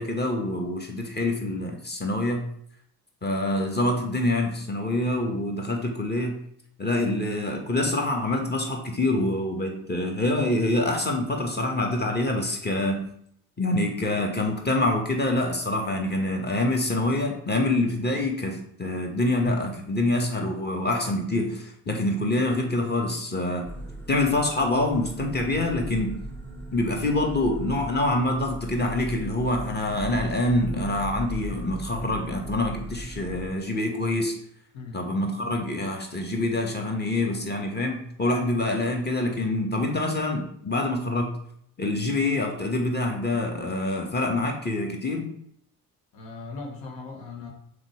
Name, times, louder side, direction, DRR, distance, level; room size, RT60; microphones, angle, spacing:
voice 1, 0.0-2.4 3.2-6.4 6.8-13.1 13.6-23.6 24.1-26.2 26.7-34.3 34.9-41.3 41.8-45.3, left 2 dB, 20° left, 2 dB, 2.0 m, -26 dB
sound 1, 23.6-33.5, right 2 dB, 5° left, 1.6 m, -38 dB
voice 2, 46.1-47.5, left 3 dB, 70° left, 0 dB, 1.8 m, -38 dB
6.5 x 5.1 x 4.9 m, 0.68 s
hypercardioid pair, 45°, 46 cm